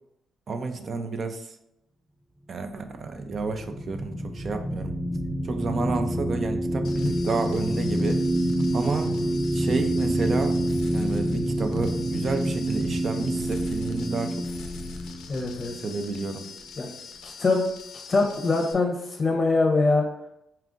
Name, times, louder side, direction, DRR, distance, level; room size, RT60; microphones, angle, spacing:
voice 1, 0.5-1.5 2.5-4.9 5.4-8.2 8.7-9.1 9.5-10.6 10.9-14.4 15.8-16.5, right 4 dB, 45° right, 7 dB, 0.5 m, -30 dB
sound 1, 2.9-16.5, right 1 dB, 10° right, 0.7 m, -27 dB
sound 2, 6.8-18.7, left 5 dB, 85° left, 0.4 m, -43 dB
voice 2, 15.3-15.7 16.8-16.9 17.2-17.6 18.1-20.1, left 3 dB, 35° left, 2 dB, 0.6 m, -23 dB
4.4 x 2.4 x 3.7 m, 0.82 s
cardioid pair, 90°, 0 cm